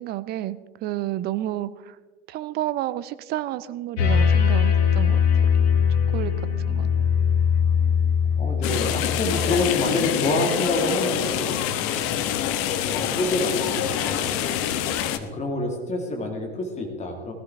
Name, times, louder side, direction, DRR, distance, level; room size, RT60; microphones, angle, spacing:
voice 1, 0.0-2.0 2.3-5.5 5.9-6.9, right 14 dB, 30° right, 15 dB, 0.5 m, -31 dB
sound 1, 4.0-9.6, left 7 dB, 65° left, 2.2 m, -21 dB
voice 2, 8.4-11.6 12.5-14.5 15.2-17.3, left 2 dB, 20° left, 3 dB, 2.3 m, -27 dB
sound 2, 8.6-15.2, left 10 dB, 40° left, 1.1 m, -26 dB
19.0 x 14.0 x 3.6 m, 1.4 s
figure-of-eight pair, 85°, 35 cm